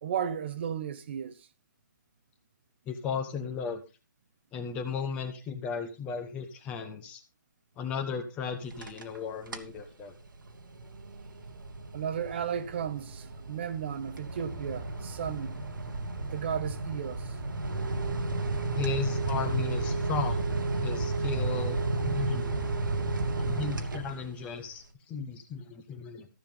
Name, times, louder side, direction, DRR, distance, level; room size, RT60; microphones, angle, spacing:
voice 1, 0.0-1.5 11.9-15.6 16.2-17.3, right 8 dB, 35° right, 1.1 m, -34 dB
voice 2, 2.9-3.8 4.5-7.2 7.8-10.1 18.7-20.4 20.8-22.7 23.3-26.3, left 5 dB, 10° left, 1.1 m, -35 dB
sound 1, 8.6-9.2 9.5-9.8 10.2-24.5, right 2 dB, 90° right, 2.5 m, -32 dB
14.5 x 7.2 x 5.5 m
hypercardioid pair, 170°, 10 cm